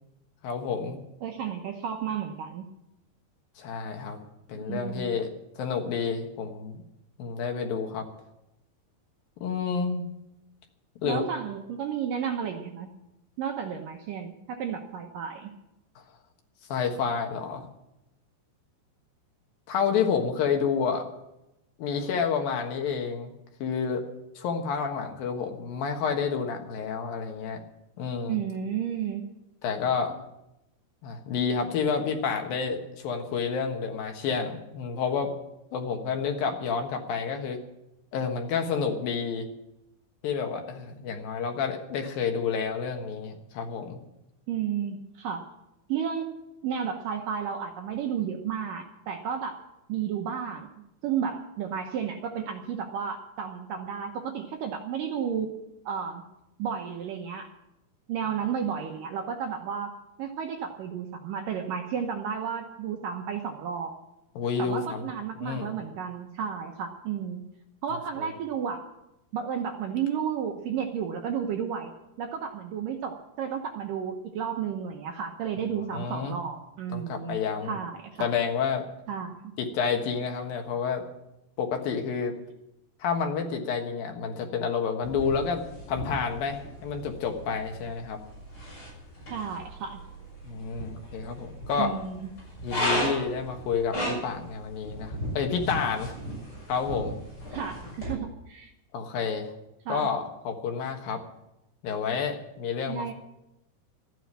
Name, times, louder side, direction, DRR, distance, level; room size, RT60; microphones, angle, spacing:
voice 1, 0.4-1.0 3.6-4.2 4.5-5.3 5.6-6.8 7.2-8.1 9.4-10.1 11.0-11.2 16.7-17.7 19.7-21.1 21.8-23.3 23.6-24.0 24.4-27.6 28.0-28.4 29.6-30.2 31.0-35.3 35.7-37.6 38.1-39.5 40.2-44.0 64.4-65.1 65.4-65.7 68.2-68.3 75.9-76.4 76.9-77.8 78.2-78.8 79.6-81.0 81.6-82.3 83.0-88.2 90.4-91.9 92.6-96.1 96.7-97.2 98.9-99.5 99.9-101.2 101.8-103.1, left 6 dB, 65° left, 3 dB, 2.9 m, -29 dB
voice 2, 1.2-2.7 4.6-5.2 11.0-12.9 13.4-15.5 28.3-29.3 44.5-45.5 45.9-46.3 46.6-49.6 49.9-55.5 55.9-56.2 56.6-57.5 58.1-59.9 60.2-63.9 64.6-67.4 67.8-68.9 69.3-71.9 72.2-78.3 79.1-79.5 89.3-90.0 91.8-92.3 97.5-98.7 99.9-100.1 102.9-103.1, right 7 dB, 75° right, 3 dB, 2.0 m, -32 dB
sound 1, 85.0-98.1, equal, 30° left, 7.4 m, -36 dB
13.0 x 9.3 x 8.6 m, 0.89 s
omnidirectional pair, 5.1 m